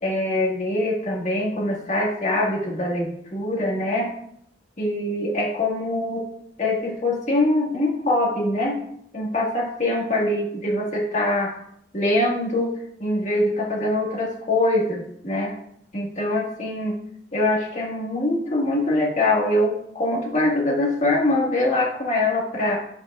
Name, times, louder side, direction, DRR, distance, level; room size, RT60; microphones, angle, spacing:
voice 1, 0.0-4.1 4.8-6.3 6.6-8.8 9.1-11.5 11.9-15.5 15.9-16.9 17.3-22.8, left 1 dB, 40° left, -2 dB, 1.7 m, -23 dB
11.0 x 5.3 x 2.4 m, 0.71 s
head